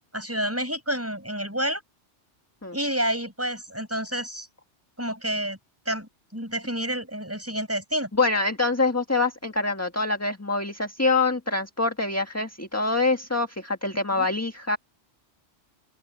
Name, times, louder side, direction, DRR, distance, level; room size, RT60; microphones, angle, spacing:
voice 1, 0.1-1.8 2.7-4.5 5.0-5.6 5.9-8.1 14.1-14.3, right 1 dB, 10° right, 5.8 m, -29 dB
voice 2, 8.1-14.8, left 3 dB, 15° left, 1.7 m, -25 dB
open air
omnidirectional pair, 1.2 m